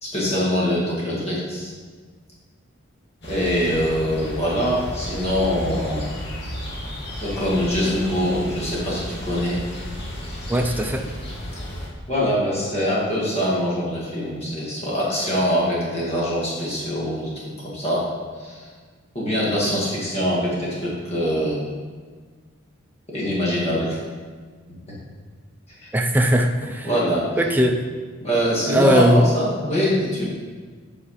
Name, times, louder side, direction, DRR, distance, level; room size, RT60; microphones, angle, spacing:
voice 1, 0.0-1.7 3.3-6.1 7.2-9.6 12.1-18.1 18.4-18.7 19.1-21.6 23.1-24.0 24.9-25.0 25.8-25.9 26.8-27.3 28.2-30.2, equal, 30° left, -6 dB, 2.0 m, -23 dB
sound 1, 3.2-11.9, equal, 55° left, 2.0 m, -33 dB
voice 2, 10.5-11.0 25.9-26.9 27.4-27.8 28.7-29.3, right 1 dB, 10° right, 3 dB, 0.5 m, -19 dB
8.2 x 4.9 x 5.0 m, 1.5 s
head